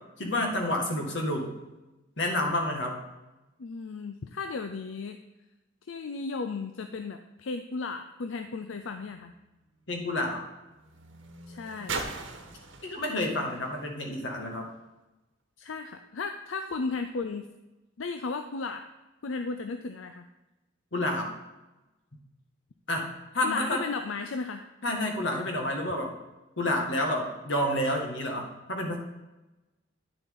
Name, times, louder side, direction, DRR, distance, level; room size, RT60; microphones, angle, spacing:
voice 1, 0.2-1.5 2.2-3.0 9.9-10.4 12.8-14.7 20.9-21.3 22.9-23.1 23.3-23.8 24.8-26.1 26.6-29.0, left 1 dB, 65° left, 1 dB, 1.9 m, -29 dB
voice 2, 3.6-5.2 5.9-9.3 11.5-12.0 15.6-17.5 18.0-18.8 19.2-20.3 23.4-24.6, left 4 dB, 90° left, 7 dB, 0.5 m, -35 dB
sound 1, 8.5-14.9 15.7-15.8, right 4 dB, 75° right, 1.2 m, -42 dB
10.0 x 6.9 x 3.7 m, 1.1 s
head